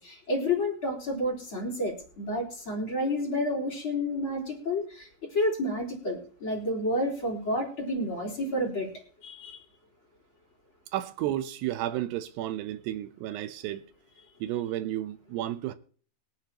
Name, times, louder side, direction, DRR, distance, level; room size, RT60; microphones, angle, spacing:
voice 1, 0.0-8.9 9.2-9.6, left 1 dB, 30° left, 4.3 m, -30 dB
voice 2, 10.9-13.8 14.4-15.7, right 13 dB, 90° right, 3.0 m, -32 dB
22.5 x 9.3 x 3.0 m
omnidirectional pair, 4.6 m